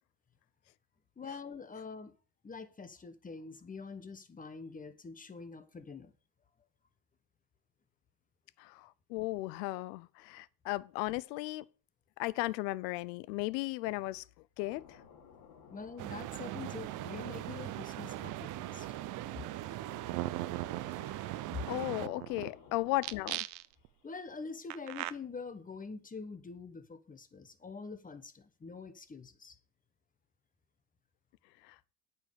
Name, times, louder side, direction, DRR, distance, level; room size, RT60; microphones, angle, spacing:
voice 1, 1.2-2.1 2.4-6.1 15.7-18.9 21.5-21.7 24.0-29.6, left 4 dB, 15° left, 1.1 m, -45 dB
voice 2, 8.6-11.7 12.2-14.2 14.6-15.0 21.2-21.3 21.7-23.4 31.6-31.8, left 20 dB, 80° left, 0.7 m, -36 dB
sound 1, 14.6-23.4, left 6 dB, 60° left, 2.9 m, -56 dB
sound 2, 16.0-22.1, right 17 dB, 40° right, 0.5 m, -41 dB
sound 3, 19.8-19.9 20.1-22.5 23.0-23.9 24.7-25.1, right 18 dB, 75° right, 0.8 m, -38 dB
8.9 x 5.6 x 6.8 m
supercardioid pair, 110°, 49 cm